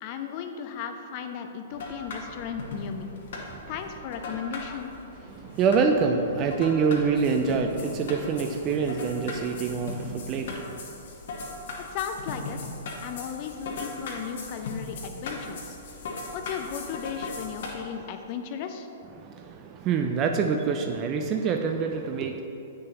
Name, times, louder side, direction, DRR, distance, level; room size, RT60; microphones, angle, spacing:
voice 1, 0.0-3.1 3.7-4.9 11.8-12.7 13.0-15.8 16.3-18.9, left 7 dB, 45° left, 6 dB, 0.6 m, -35 dB
sound 1, 1.7-17.7, left 3 dB, 60° left, 1.2 m, -39 dB
voice 2, 5.2-10.9 17.9-18.1 19.1-22.4, right 5 dB, 35° right, 4 dB, 0.4 m, -26 dB
8.5 x 6.4 x 2.8 m, 2.7 s
figure-of-eight pair, 110°, 0 cm